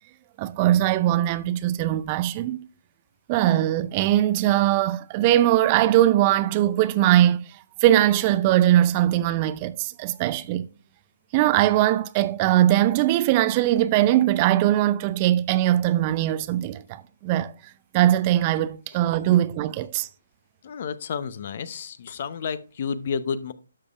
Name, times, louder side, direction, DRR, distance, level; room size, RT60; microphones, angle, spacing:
voice 1, 0.4-2.7 3.3-7.5 7.8-10.7 11.3-16.8 17.2-17.5 17.9-20.1, right 13 dB, 30° right, 0.4 m, -21 dB
voice 2, 20.6-23.5, left 6 dB, 45° left, 0.7 m, -31 dB
12.0 x 6.6 x 2.4 m
figure-of-eight pair, 140°, 0 cm